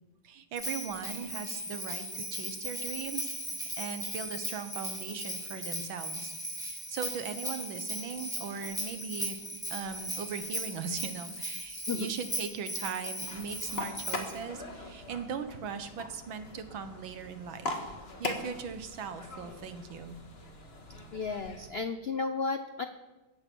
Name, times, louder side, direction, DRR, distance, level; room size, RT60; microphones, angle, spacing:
voice 1, 0.2-3.3 3.8-9.4 9.7-17.8 18.2-20.2, right 6 dB, 85° right, 9 dB, 1.9 m, -39 dB
Bell, 0.6-14.4, equal, ahead, 3.1 m, -38 dB
sound 1, 13.2-21.7, left 2 dB, 35° left, 1.7 m, -41 dB
voice 2, 21.1-22.9, left 4 dB, 70° left, 9 dB, 0.5 m, -33 dB
17.5 x 14.5 x 4.6 m, 1.1 s
omnidirectional pair, 2.1 m